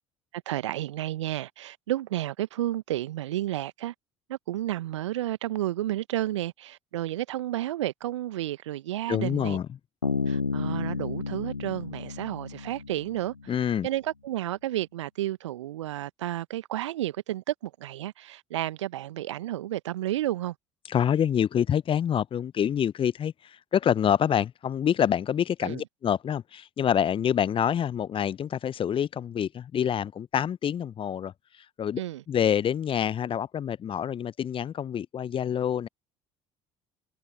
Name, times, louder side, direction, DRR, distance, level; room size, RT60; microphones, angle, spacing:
voice 1, 0.5-3.9 4.3-9.6 10.3-13.5 13.8-20.5 25.6-25.8 32.0-32.2, right 14 dB, 70° right, 1.3 m, -31 dB
voice 2, 9.1-9.7 13.5-13.9 20.9-32.0 32.3-35.9, left 9 dB, 35° left, 0.8 m, -27 dB
Bass guitar, 10.0-13.5, left 4 dB, 90° left, 0.6 m, -31 dB
figure-of-eight pair, 60°, 16 cm